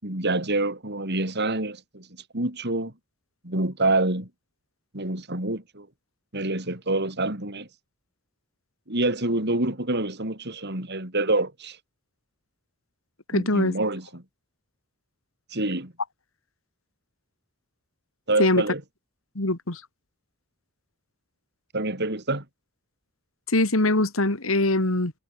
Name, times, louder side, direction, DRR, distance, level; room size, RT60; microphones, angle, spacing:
voice 1, 0.0-2.1 2.3-2.9 3.4-4.3 4.9-5.9 6.3-7.7 8.9-11.8 13.3-14.2 15.5-15.9 18.3-18.8 21.7-22.4, right 2 dB, 55° right, 6.2 m, -26 dB
voice 2, 13.3-13.7 18.4-18.6 19.3-19.8 23.5-25.1, left 2 dB, 80° left, 2.8 m, -22 dB
head